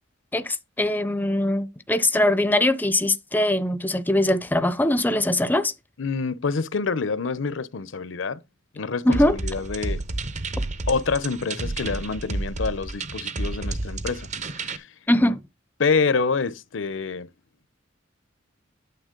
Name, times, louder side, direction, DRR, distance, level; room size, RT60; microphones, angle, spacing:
voice 1, 0.3-5.7 9.0-9.4 15.1-15.4, left 1 dB, 10° left, 0.6 m, -22 dB
voice 2, 6.0-8.4 8.7-10.0 10.9-14.3 14.6-14.9 15.8-17.3, left 4 dB, 70° left, 0.7 m, -26 dB
sound 1, 9.1-14.8, right 2 dB, 40° right, 0.8 m, -30 dB
9.1 x 7.1 x 3.8 m
head